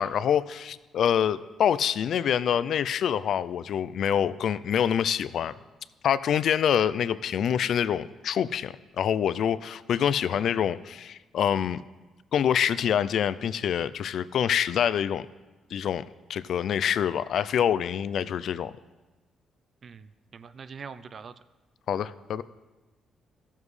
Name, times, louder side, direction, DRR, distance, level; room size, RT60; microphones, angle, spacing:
voice 1, 0.0-5.5 6.0-11.8 12.3-15.3 15.7-16.0 16.3-18.7 21.9-22.4, left 9 dB, 65° left, 16 dB, 0.3 m, -26 dB
voice 2, 19.8-21.3, right 6 dB, 45° right, 14 dB, 0.4 m, -43 dB
15.5 x 7.3 x 3.2 m, 1.2 s
cardioid pair, 90°, 0 cm